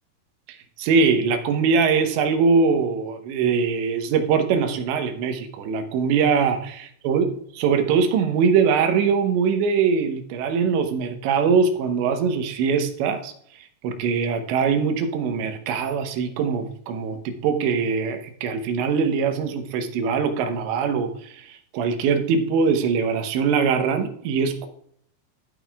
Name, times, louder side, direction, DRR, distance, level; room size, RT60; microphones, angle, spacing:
voice 1, 0.5-13.3 13.8-24.7, right 5 dB, 85° right, 7 dB, 3.3 m, -22 dB
13.0 x 8.9 x 2.4 m, 0.63 s
omnidirectional pair, 5.0 m